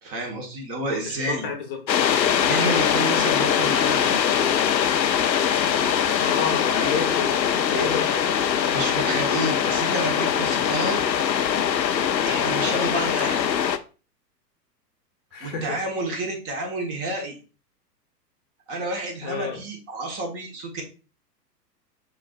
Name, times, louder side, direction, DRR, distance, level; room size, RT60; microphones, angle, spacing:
voice 1, 0.0-1.5 2.4-4.2 6.7-6.9 7.7-7.9 8.7-11.0 12.2-13.4 15.4-17.4 18.7-20.8, right 2 dB, 25° right, 1 dB, 1.3 m, -30 dB
voice 2, 0.9-1.8 6.2-8.2 15.3-15.8 19.2-19.6, left 6 dB, 35° left, 3 dB, 0.9 m, -30 dB
sound 1, 1.9-13.8, left 8 dB, 85° left, 0.6 m, -22 dB
4.7 x 3.9 x 2.4 m, 0.34 s
figure-of-eight pair, 105°, 49 cm